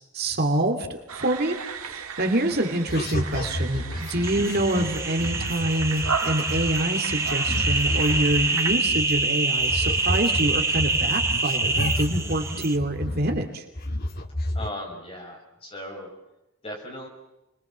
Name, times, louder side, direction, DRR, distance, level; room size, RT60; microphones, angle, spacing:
voice 1, 0.1-13.6, right 1 dB, 45° right, 3 dB, 2.8 m, -26 dB
sound 1, 1.1-8.8, right 6 dB, 80° right, 1.8 m, -35 dB
sound 2, 2.9-9.3 9.6-13.5 13.7-14.7, left 1 dB, 45° left, 1.7 m, -31 dB
sound 3, 4.2-12.8, right 3 dB, 10° right, 1.2 m, -26 dB
voice 2, 14.5-16.1 16.6-17.1, left 1 dB, 25° left, 1 dB, 6.2 m, -37 dB
29.5 x 22.5 x 7.5 m, 0.94 s
head